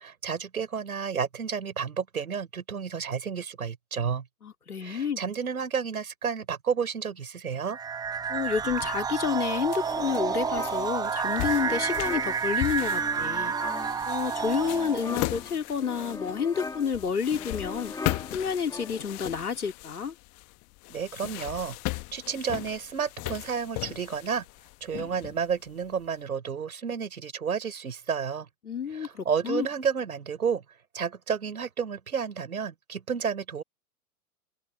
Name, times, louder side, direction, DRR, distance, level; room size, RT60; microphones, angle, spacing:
voice 1, 0.0-4.2 4.8-7.8 20.9-21.8 22.1-24.4 24.8-28.5 28.9-30.6 30.9-33.6, right 6 dB, 70° right, 7.6 m, -31 dB
voice 2, 4.4-5.2 8.3-13.5 14.1-17.9 18.3-20.1 28.6-29.7, left 6 dB, 75° left, 2.8 m, -29 dB
sound 1, 7.7-15.3, right 6 dB, 10° right, 0.8 m, -30 dB
sound 2, 8.6-26.0, left 29 dB, 35° left, 1.7 m, -38 dB
sound 3, 9.8-19.3, left 3 dB, 10° left, 2.7 m, -41 dB
open air
figure-of-eight pair, 105°, 45 cm